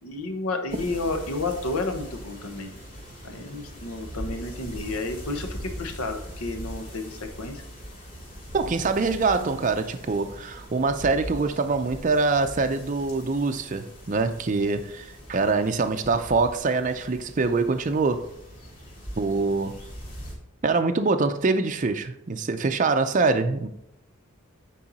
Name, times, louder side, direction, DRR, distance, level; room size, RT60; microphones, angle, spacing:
voice 1, 0.0-2.7 3.2-7.6, left 2 dB, 80° left, 1.1 m, -31 dB
sound 1, 0.7-20.3, equal, 40° left, 2.6 m, -41 dB
voice 2, 8.5-18.3 19.2-19.7 20.6-23.7, right 3 dB, 35° right, 0.4 m, -24 dB
8.7 x 4.7 x 4.0 m
head